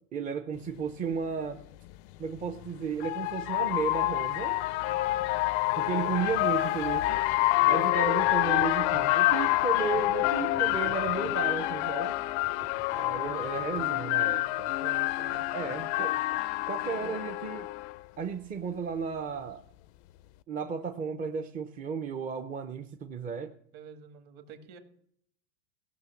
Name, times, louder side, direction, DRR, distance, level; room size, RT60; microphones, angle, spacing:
voice 1, 0.1-1.6 2.2-4.6 5.8-7.2 7.7-12.2 12.9-14.7 15.5-16.2 16.7-17.7 18.2-19.6 20.5-23.5, right 6 dB, 20° right, 6 dB, 0.6 m, -34 dB
sound 1, 0.8-0.9 2.3-17.9, left 18 dB, 55° left, 0.5 m, -27 dB
voice 2, 7.5-8.0 13.1-13.7 14.4-16.0 16.6-17.3 23.7-24.8, right 7 dB, 50° right, 6 dB, 1.9 m, -50 dB
sound 2, 8.2-9.1 9.9-11.4 12.4-13.9 15.3-16.4, right 1 dB, 75° right, 2.9 m, -50 dB
16.5 x 5.9 x 7.0 m, 0.67 s
supercardioid pair, 120°, 41 cm